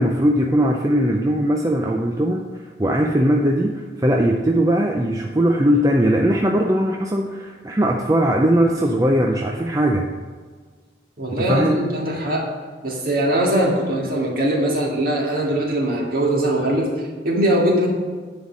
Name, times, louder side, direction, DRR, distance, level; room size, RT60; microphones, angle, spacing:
voice 1, 0.0-10.1 11.4-11.8, equal, 20° right, 1 dB, 0.4 m, -19 dB
voice 2, 11.2-12.5 12.8-16.9 17.2-17.9, right 1 dB, 50° right, -2 dB, 2.0 m, -21 dB
9.7 x 4.1 x 7.3 m, 1.5 s
head